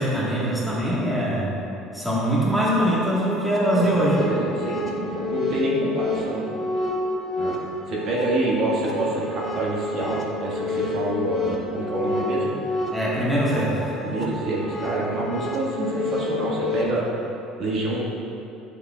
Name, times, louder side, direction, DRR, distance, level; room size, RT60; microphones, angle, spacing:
voice 1, 0.0-1.5 1.9-4.2 12.9-13.8, equal, ahead, -8 dB, 1.3 m, -22 dB
sound 1, 2.5-16.9, left 2 dB, 30° left, 1.0 m, -30 dB
voice 2, 3.7-6.6 7.4-7.6 7.9-12.6 14.0-17.0 17.6-18.0, right 2 dB, 50° right, -5 dB, 1.5 m, -27 dB
9.5 x 6.9 x 2.3 m, 2.8 s
cardioid pair, 150°, 0 cm